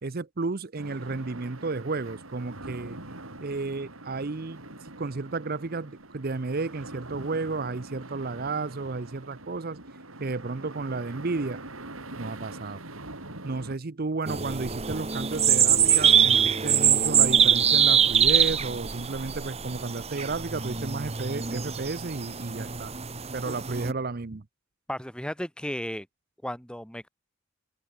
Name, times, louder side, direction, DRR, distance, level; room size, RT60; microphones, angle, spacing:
voice 1, 0.0-3.0 3.4-4.6 5.0-9.8 10.2-11.6 12.2-12.8 13.4-22.9 23.3-24.4, right 3 dB, 45° right, 0.7 m, -32 dB
sound 1, 0.8-13.8, right 2 dB, 85° right, 5.8 m, -43 dB
sound 2, 14.3-23.9, right 8 dB, 30° right, 1.3 m, -23 dB
voice 2, 24.9-26.1 26.4-27.1, equal, 5° left, 4.8 m, -34 dB
open air
head